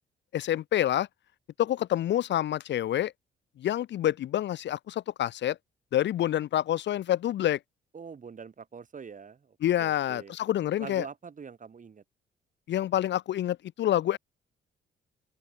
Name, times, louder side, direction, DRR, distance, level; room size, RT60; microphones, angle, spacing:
voice 1, 0.3-1.1 1.6-3.1 3.6-5.6 5.9-7.6 9.6-11.1 12.7-14.2, left 12 dB, 65° left, 0.7 m, -27 dB
voice 2, 7.9-10.4 10.8-12.0, right 6 dB, 40° right, 5.3 m, -44 dB
open air
cardioid pair, 90°, 20 cm